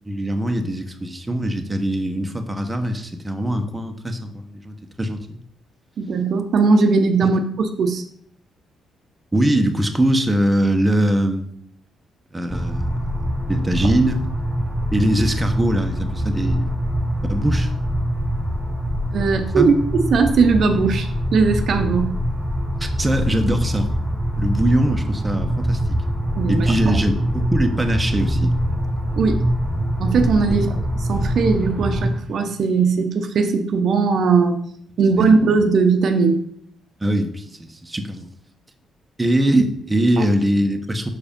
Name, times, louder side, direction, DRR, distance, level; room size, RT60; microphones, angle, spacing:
voice 1, 0.1-5.4 7.2-7.3 9.3-11.5 12.3-13.0 13.5-14.2 14.9-16.7 17.3-17.7 19.5-19.7 22.8-23.9 24.4-26.0 26.5-28.5 30.5-30.6 35.2-35.4 37.0-38.3 39.2-41.1, right 1 dB, 15° right, 4 dB, 0.9 m, -22 dB
voice 2, 6.0-8.0 19.1-22.1 26.4-26.9 29.1-29.4 30.0-30.7 31.1-34.6 35.0-36.4, right 4 dB, 60° right, 6 dB, 0.8 m, -19 dB
sound 1, 12.5-32.1, equal, 5° left, 2.2 m, -23 dB
6.2 x 4.9 x 5.2 m, 0.64 s
cardioid pair, 90°, 0 cm